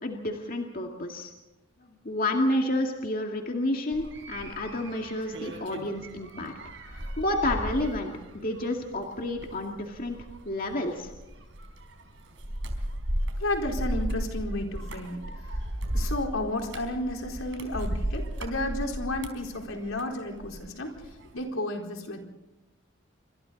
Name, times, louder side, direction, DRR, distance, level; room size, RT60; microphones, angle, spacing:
voice 1, 0.0-1.3 1.8-6.5 6.9-10.2 10.4-11.1, left 1 dB, 45° left, 2 dB, 2.2 m, -30 dB
sound 1, 3.9-20.6 21.0-21.4, equal, 65° right, 4.3 m, -35 dB
voice 2, 13.4-15.2 15.5-15.6 15.9-20.9 21.3-22.2, left 1 dB, 85° left, 2 dB, 4.4 m, -32 dB
27.5 x 25.5 x 4.1 m, 1.0 s
head